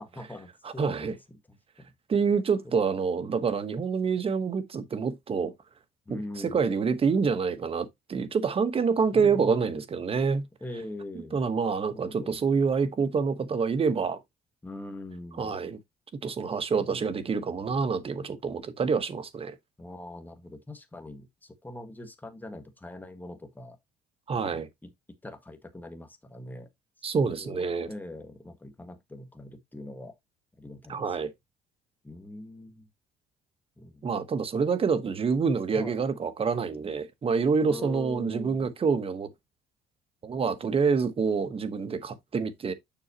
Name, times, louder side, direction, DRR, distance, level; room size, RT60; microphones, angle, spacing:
voice 1, 0.0-1.9 2.6-3.1 6.0-6.7 9.1-9.8 10.6-11.3 11.8-12.4 14.6-15.6 16.7-17.2 19.8-23.8 24.3-24.9 25.2-26.7 27.1-30.1 30.6-31.2 32.0-32.9 33.8-34.1 35.7-36.0 37.6-38.7, left 1 dB, 10° left, 1.6 m, -42 dB
voice 2, 0.8-1.1 2.1-5.5 6.1-6.2 6.5-10.4 11.3-14.2 15.4-15.8 16.2-19.6 24.3-24.7 27.0-27.9 30.9-31.3 34.0-39.3 40.2-42.7, right 5 dB, 35° right, 1.2 m, -27 dB
7.1 x 6.3 x 2.9 m
cardioid pair, 110°, 17 cm